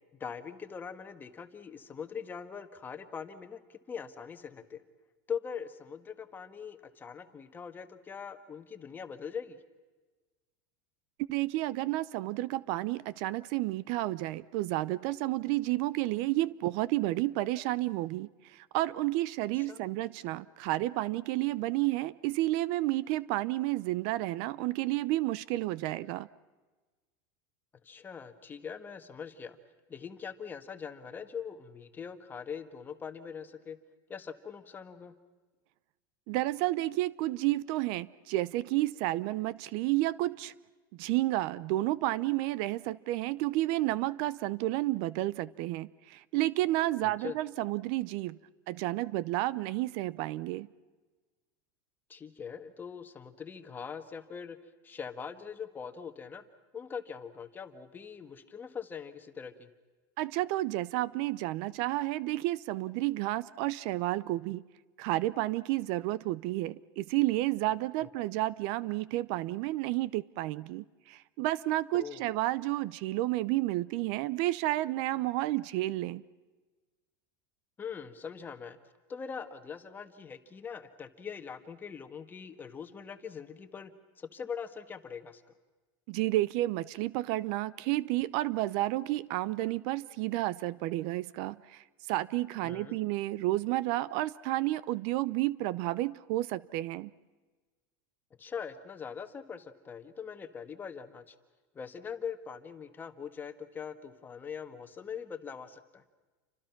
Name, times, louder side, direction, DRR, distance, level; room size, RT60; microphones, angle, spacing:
voice 1, 0.2-4.8 5.3-9.6 19.5-19.8 27.8-29.6 29.9-33.8 34.1-35.1 47.0-47.3 52.1-54.6 54.8-56.4 56.7-59.7 71.9-72.2 77.8-78.8 79.1-85.4 92.6-93.0 98.4-101.3 101.7-106.0, left 6 dB, 15° left, 9 dB, 1.6 m, -42 dB
voice 2, 11.3-26.3 36.3-40.5 41.0-48.4 48.7-50.7 60.2-64.6 65.0-76.2 86.1-97.1, right 17 dB, 55° right, 19 dB, 0.7 m, -31 dB
29.5 x 25.5 x 6.0 m, 1.3 s
supercardioid pair, 150°, 11 cm